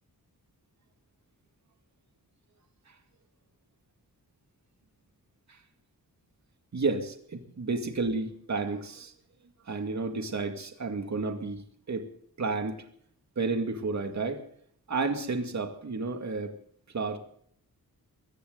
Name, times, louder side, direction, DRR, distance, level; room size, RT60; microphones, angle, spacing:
voice 1, 6.7-9.1 9.7-11.6 11.9-12.1 12.4-12.8 13.4-14.4 14.9-16.5 16.9-17.2, right 3 dB, 50° right, 5 dB, 2.3 m, -31 dB
21.5 x 15.5 x 4.0 m, 0.63 s
wide cardioid pair, 115°, 36 cm